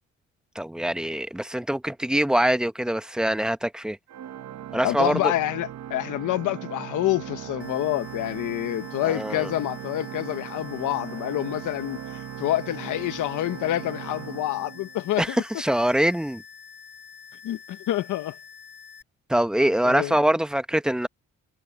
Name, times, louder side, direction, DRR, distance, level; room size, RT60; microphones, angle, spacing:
voice 1, 0.5-4.0 4.7-5.3 9.0-9.5 15.2-16.4 19.3-21.1, right 1 dB, ahead, 1.0 m, -24 dB
Organ, 4.1-15.2, right 10 dB, 65° right, 1.2 m, -38 dB
voice 2, 4.8-15.4 17.4-18.3 19.8-20.3, left 14 dB, 80° left, 1.3 m, -27 dB
sound 1, 7.6-19.0, left 6 dB, 35° left, 6.7 m, -47 dB
cardioid pair, 90°, 30 cm